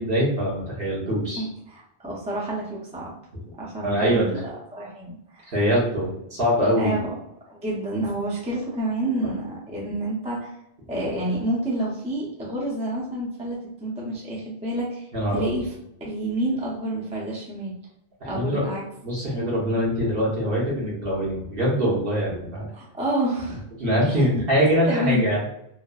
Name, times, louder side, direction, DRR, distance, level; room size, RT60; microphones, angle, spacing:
voice 1, 0.0-1.5 3.8-4.2 5.5-6.9 15.1-15.6 18.2-18.6 19.0-22.6 23.8-25.4, equal, 60° right, -5 dB, 1.1 m, -23 dB
voice 2, 1.4-3.1 3.5-5.5 6.8-7.1 7.5-10.5 10.9-15.1 15.3-15.7 16.1-17.7 18.3-18.8 22.7-23.6 24.1-24.3 24.9-25.2, right 1 dB, 10° right, -4 dB, 0.4 m, -29 dB
3.1 x 2.0 x 2.3 m, 0.80 s
omnidirectional pair, 1.1 m